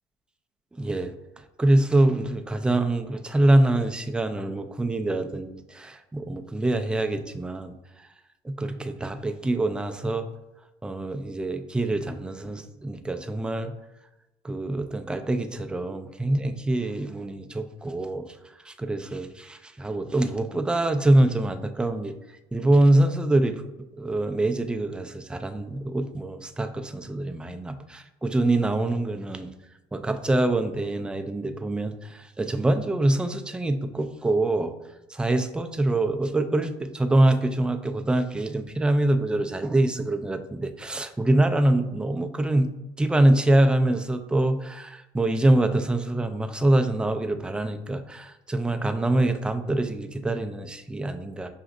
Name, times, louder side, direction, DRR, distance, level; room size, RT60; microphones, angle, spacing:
voice 1, 0.8-1.1 1.6-7.7 8.4-10.3 10.8-13.7 14.4-18.3 18.6-22.1 22.5-23.6 23.9-29.5 29.9-34.7 35.1-42.7 43.0-51.5, right 1 dB, 5° right, 7 dB, 0.3 m, -24 dB
5.8 x 2.4 x 2.5 m, 0.99 s
cardioid pair, 105°, 14 cm